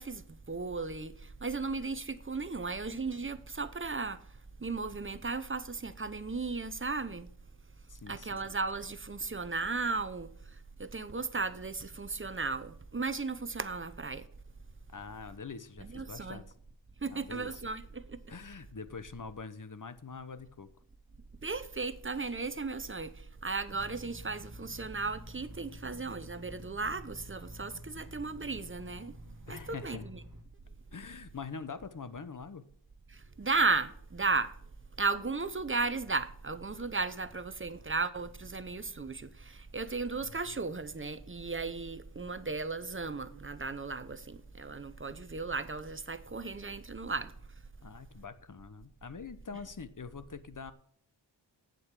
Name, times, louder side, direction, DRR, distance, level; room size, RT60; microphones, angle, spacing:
voice 1, 0.0-4.2 4.6-7.3 8.1-14.3 15.8-16.4 17.0-18.2 21.4-29.1 29.5-30.2 33.1-34.5 35.0-47.3, right 4 dB, 25° right, 0.8 m, -35 dB
voice 2, 7.9-8.5 14.9-16.4 17.1-17.6 18.3-20.7 29.5-30.1 30.9-32.6 40.2-40.6 47.8-50.7, left 5 dB, 40° left, 0.9 m, -44 dB
sound 1, 23.7-30.4, equal, 40° right, 1.5 m, -50 dB
8.6 x 7.8 x 7.5 m
wide cardioid pair, 55°, 47 cm